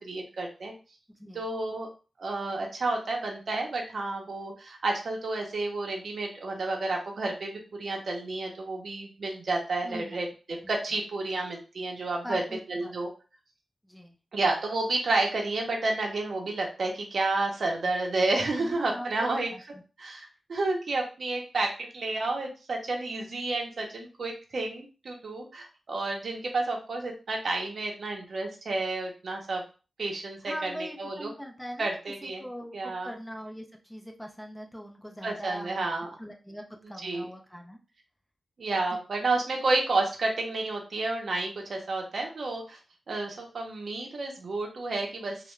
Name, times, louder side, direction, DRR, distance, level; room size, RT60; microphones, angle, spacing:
voice 1, 0.0-0.7 1.3-1.9 2.2-10.3 10.7-12.4 12.7-13.1 14.3-19.5 20.0-29.6 30.0-30.7 31.0-31.3 31.8-32.4 32.7-33.1 35.2-36.1 37.0-37.3 38.6-42.8 43.1-45.5, right 2 dB, 55° right, 0 dB, 0.5 m, -30 dB
voice 2, 9.8-10.2 10.6-10.7 12.2-12.9 13.8-14.2 18.6-19.8 30.4-31.9 32.2-35.9 36.2-37.8 38.7-38.8, equal, 5° left, 2 dB, 0.4 m, -41 dB
2.3 x 2.1 x 3.0 m, 0.34 s
wide cardioid pair, 155°, 0 cm